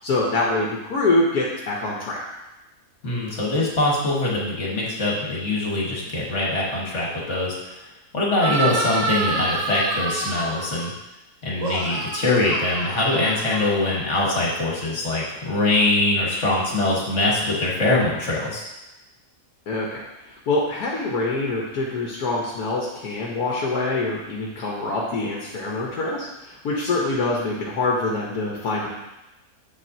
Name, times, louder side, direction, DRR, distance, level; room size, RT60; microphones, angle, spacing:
voice 1, 0.0-2.2 19.7-28.9, left 2 dB, 75° left, -3 dB, 1.5 m, -25 dB
voice 2, 3.0-7.8 8.1-10.9 11.4-18.6, left 2 dB, 50° left, -4 dB, 1.8 m, -23 dB
sound 1, 8.4-10.9 11.5-14.1, right 3 dB, 60° right, 1.3 m, -28 dB
7.4 x 7.1 x 2.7 m, 0.98 s
omnidirectional pair, 1.7 m